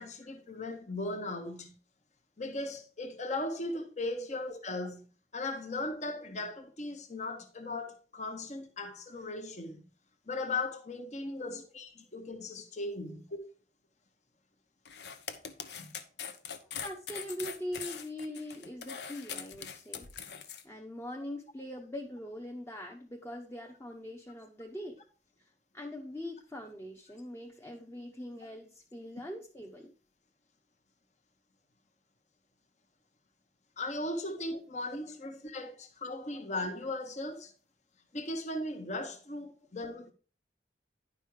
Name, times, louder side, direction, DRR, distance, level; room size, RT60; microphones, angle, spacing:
voice 1, 0.0-1.7 2.4-5.1 5.3-9.8 10.3-13.4 15.8-15.9 33.8-37.5 38.1-40.1, left 2 dB, 40° left, 1.1 m, -37 dB
sound 1, 14.8-20.6, left 7 dB, 70° left, 0.9 m, -42 dB
voice 2, 16.8-20.1 20.6-25.0 25.4-29.9 36.3-36.4, left 1 dB, 15° left, 0.9 m, -42 dB
10.5 x 5.5 x 4.7 m
head